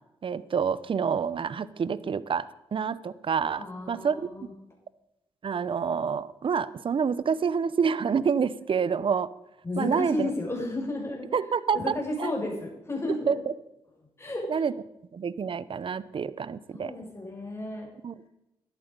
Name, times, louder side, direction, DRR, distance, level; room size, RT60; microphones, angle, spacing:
voice 1, 0.2-4.2 5.4-9.3 9.8-10.3 11.3-12.3 13.3-13.4 14.5-14.7 15.1-16.9 18.0-18.1, right 6 dB, 50° right, 18 dB, 0.8 m, -28 dB
voice 2, 3.6-4.5 9.6-11.3 11.7-13.4 14.2-14.5 16.7-17.9, left 1 dB, 25° left, -1 dB, 6.3 m, -32 dB
13.5 x 11.0 x 5.3 m, 0.90 s
supercardioid pair, 50°, 11 cm